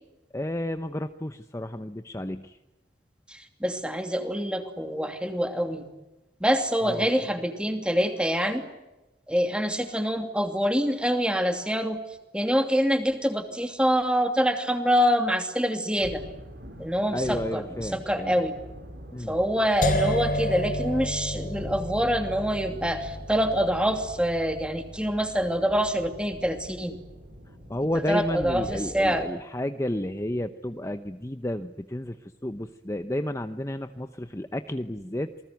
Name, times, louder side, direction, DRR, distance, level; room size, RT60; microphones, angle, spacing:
voice 1, 0.3-2.6 6.8-7.1 17.1-18.3 19.1-19.3 27.7-35.3, left 1 dB, 15° left, 9 dB, 0.8 m, -31 dB
voice 2, 3.3-5.9 6.4-8.6 9.3-12.0 12.3-16.2 16.8-18.6 19.3-27.0 28.1-29.3, equal, 5° right, 6 dB, 2.8 m, -25 dB
sound 1, 16.0-29.3, equal, 70° right, 6.5 m, -45 dB
sound 2, 19.8-25.7, left 1 dB, 50° left, 5.1 m, -31 dB
28.0 x 20.5 x 9.3 m, 1.0 s
head